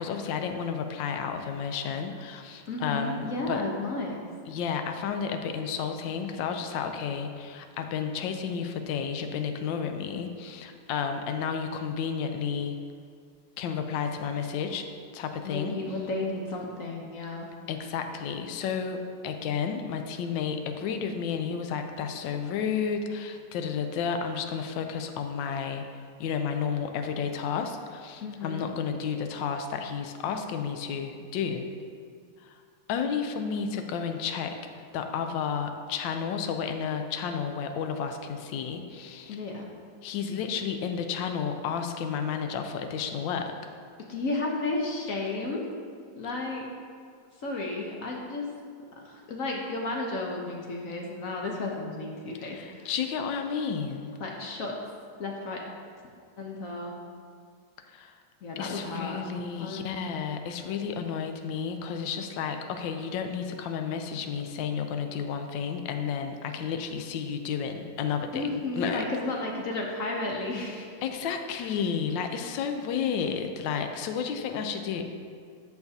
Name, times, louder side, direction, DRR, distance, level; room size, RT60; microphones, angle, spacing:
voice 1, 0.0-3.6 4.5-12.8 13.6-14.9 15.1-15.8 17.7-25.8 26.2-31.7 32.4-32.5 32.9-34.6 34.9-39.4 40.0-43.5 52.4-54.1 57.8-58.2 58.6-69.0 71.0-75.0, left 6 dB, 80° left, 6 dB, 1.3 m, -32 dB
voice 2, 2.7-4.2 15.4-17.5 28.2-28.7 39.3-39.7 44.1-45.6 46.1-46.7 47.4-48.5 49.0-52.9 54.2-54.7 55.2-55.6 56.4-56.9 58.4-59.2 59.6-59.8 68.3-70.9 71.6-71.7, left 2 dB, 60° left, -1 dB, 0.9 m, -33 dB
14.0 x 4.8 x 2.7 m, 2.1 s
omnidirectional pair, 2.1 m